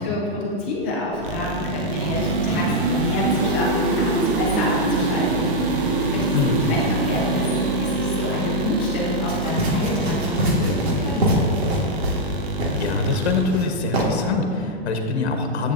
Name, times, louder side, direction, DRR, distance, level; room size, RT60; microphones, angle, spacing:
voice 1, 0.0-6.3 6.7-11.5, left 2 dB, 10° left, -4 dB, 0.3 m, -28 dB
sound 1, 0.7-7.5, left 1 dB, 10° right, 2.0 m, -41 dB
sound 2, 1.2-13.4, right 3 dB, 55° right, 1.1 m, -25 dB
voice 2, 6.3-6.7 12.7-15.7, left 4 dB, 85° left, 4 dB, 1.1 m, -24 dB
sound 3, 9.3-12.3 12.6-12.9 13.2-13.6 13.9-14.1, right 1 dB, 80° right, 2.0 m, -23 dB
10.5 x 8.2 x 2.6 m, 2.5 s
hypercardioid pair, 165°, 32 cm